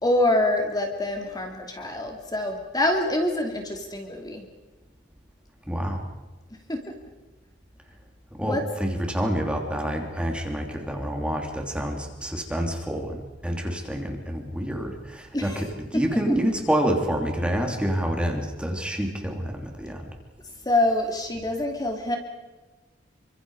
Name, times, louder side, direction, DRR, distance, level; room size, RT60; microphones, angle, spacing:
voice 1, 0.0-4.4 6.7-6.9 8.4-8.6 15.3-15.6 15.9-16.0 20.6-22.2, left 1 dB, 20° left, 3 dB, 2.9 m, -25 dB
voice 2, 5.7-6.0 8.4-20.1, equal, 5° right, 2 dB, 3.1 m, -27 dB
28.5 x 25.5 x 4.9 m, 1.2 s
head